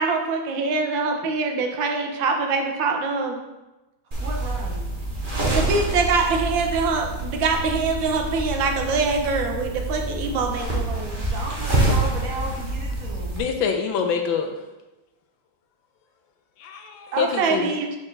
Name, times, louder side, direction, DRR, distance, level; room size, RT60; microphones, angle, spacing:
voice 1, 0.0-3.4 5.4-11.2 17.1-18.0, right 4 dB, 75° right, 3 dB, 1.5 m, -24 dB
sound 1, 4.1-13.4, right 2 dB, 30° right, 1.1 m, -27 dB
voice 2, 4.1-4.9 11.2-13.4, right 2 dB, 55° right, -1 dB, 1.2 m, -34 dB
voice 3, 13.3-14.6 16.6-17.7, left 6 dB, 75° left, 5 dB, 1.4 m, -25 dB
6.6 x 4.8 x 3.2 m, 1.0 s
omnidirectional pair, 2.1 m